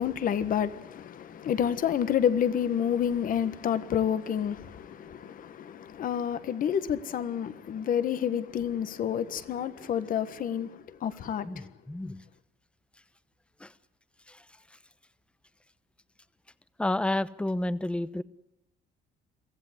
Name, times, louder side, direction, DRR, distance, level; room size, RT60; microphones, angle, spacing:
voice 1, 0.0-11.7, left 9 dB, 55° left, 1.5 m, -29 dB
voice 2, 11.4-12.2 13.6-13.7 14.3-14.4 16.8-18.2, left 1 dB, 5° left, 0.8 m, -30 dB
24.0 x 15.5 x 9.8 m
cardioid pair, 110°, 17 cm